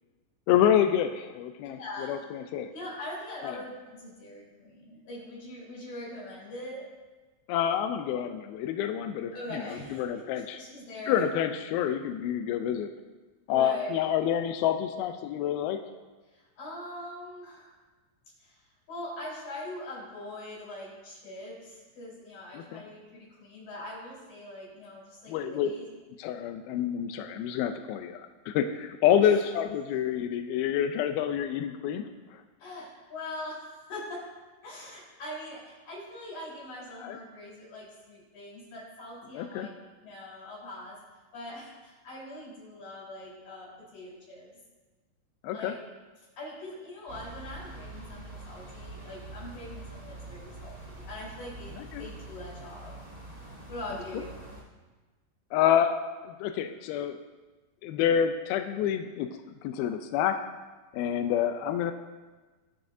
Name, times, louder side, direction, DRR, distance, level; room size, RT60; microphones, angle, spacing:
voice 1, 0.5-1.8 2.1-2.7 3.4-3.6 7.5-10.6 11.1-12.9 13.5-15.8 22.5-22.8 25.3-25.7 26.2-28.2 28.5-32.0 32.3-32.4 37.0-37.2 39.3-39.7 45.4-45.7 51.8-52.1 55.5-57.2 57.8-59.3 59.6-60.4 60.9-61.9, left 9 dB, 85° left, 7 dB, 2.2 m, -28 dB
voice 2, 1.7-2.3 2.7-6.9 9.3-11.3 13.5-14.1 16.3-17.7 18.4-18.6 18.9-25.8 29.2-29.4 29.9-30.0 32.6-34.3 34.6-39.7 40.0-41.0 41.3-44.5 45.5-45.8 46.2-53.0 53.7-54.4, left 1 dB, 50° left, -6 dB, 5.6 m, -42 dB
sound 1, 47.1-54.6, right 2 dB, 20° right, 2.8 m, -45 dB
21.0 x 7.7 x 2.7 m, 1.3 s
omnidirectional pair, 5.0 m